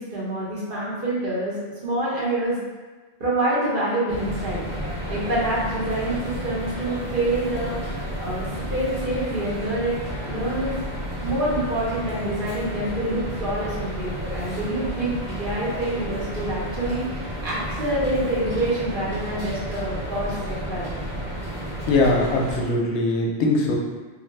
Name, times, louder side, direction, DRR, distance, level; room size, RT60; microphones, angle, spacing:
voice 1, 0.0-1.5 1.8-2.6 3.2-4.6 5.1-9.9 10.2-10.7 11.2-20.8, right 1 dB, 55° right, -7 dB, 1.0 m, -26 dB
sound 1, 4.1-22.6, equal, 35° right, 0.6 m, -32 dB
voice 2, 21.9-23.7, left 2 dB, 80° left, -1 dB, 0.9 m, -21 dB
2.5 x 2.4 x 3.2 m, 1.3 s
omnidirectional pair, 1.1 m